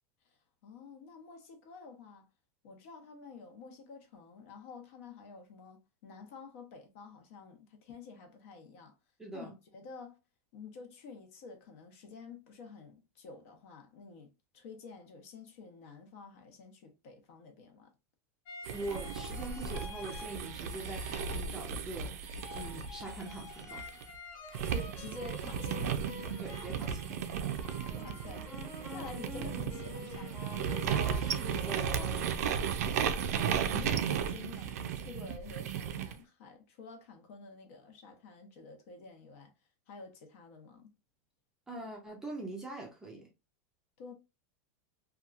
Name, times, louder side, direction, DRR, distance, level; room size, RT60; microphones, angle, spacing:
voice 1, 0.2-2.3 2.6-9.0 9.3-10.2 10.5-17.9 24.7-26.4 27.6-30.7 33.0-39.5 39.9-40.9 44.0-44.1, left 4 dB, 60° left, 0.8 m, -50 dB
voice 2, 9.2-9.5 18.7-22.1 22.5-23.9 26.4-27.3 31.2-32.3 41.7-43.3, right 2 dB, 5° right, 0.5 m, -43 dB
sound 1, 18.5-21.9 22.2-32.8, left 4 dB, 35° left, 0.6 m, -48 dB
sound 2, 18.6-24.0 24.5-36.2, right 7 dB, 75° right, 0.4 m, -35 dB
2.9 x 2.3 x 2.3 m
supercardioid pair, 170°, 8 cm